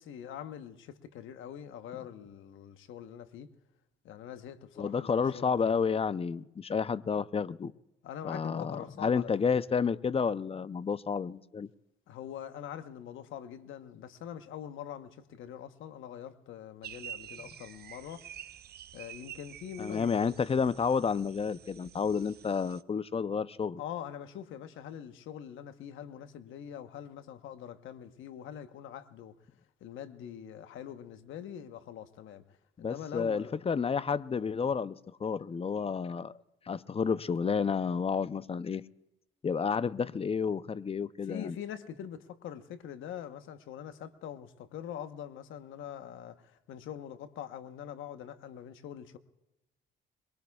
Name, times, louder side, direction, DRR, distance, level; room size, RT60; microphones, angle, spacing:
voice 1, 0.0-3.5 4.0-5.7 8.0-9.3 12.1-18.3 18.9-20.3 23.8-29.4 29.8-32.4 32.8-33.6 41.3-49.2, left 9 dB, 85° left, 1.1 m, -44 dB
voice 2, 4.8-7.7 8.2-11.7 19.8-23.8 32.8-36.4 36.7-38.8 39.4-41.6, left 6 dB, 30° left, 0.6 m, -30 dB
sound 1, 16.8-22.8, right 10 dB, 55° right, 0.6 m, -48 dB
23.0 x 22.0 x 2.3 m
cardioid pair, 90°, 20 cm